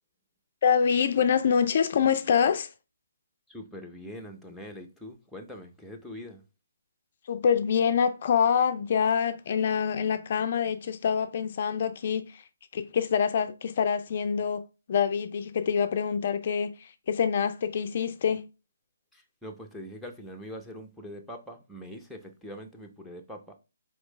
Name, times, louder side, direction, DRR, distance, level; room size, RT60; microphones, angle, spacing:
voice 1, 0.6-2.7 7.3-12.4 12.7-14.6 14.9-18.4, left 7 dB, 45° left, 0.3 m, -25 dB
voice 2, 3.5-6.4 19.1-23.4, equal, ahead, 0.6 m, -43 dB
4.1 x 3.1 x 3.2 m
hypercardioid pair, 150°, 0 cm